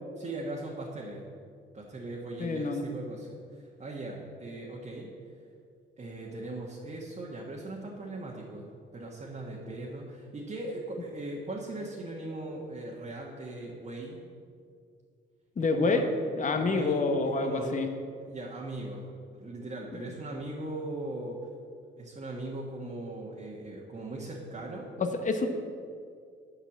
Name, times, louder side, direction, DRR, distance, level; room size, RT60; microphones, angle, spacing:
voice 1, 0.2-1.2 1.7-5.1 6.0-14.2 15.7-16.0 16.5-17.7 18.2-21.4 22.0-24.9, right 2 dB, 35° right, -3 dB, 1.5 m, -39 dB
voice 2, 2.4-2.8 15.6-16.1 16.4-17.9 25.0-25.5, left 3 dB, 40° left, 6 dB, 1.1 m, -27 dB
8.9 x 5.8 x 7.3 m, 2.3 s
cardioid pair, 90°, 20 cm